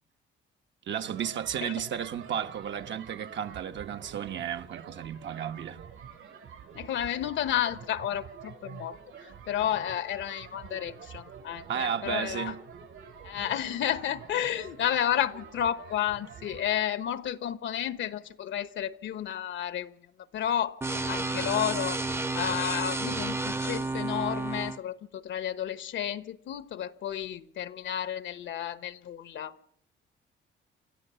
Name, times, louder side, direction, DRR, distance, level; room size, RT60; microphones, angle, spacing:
voice 1, 0.9-5.8 11.7-12.6, right 8 dB, 65° right, 1.4 m, -33 dB
sound 1, 1.0-16.7, right 7 dB, 85° right, 7.1 m, -47 dB
voice 2, 6.7-9.0 9.2-12.6 13.2-19.9 20.3-22.0 22.3-29.5, left 10 dB, 70° left, 1.1 m, -31 dB
sound 2, 20.8-24.8, right 2 dB, 10° right, 0.8 m, -31 dB
28.0 x 13.5 x 6.9 m
cardioid pair, 90°, 20 cm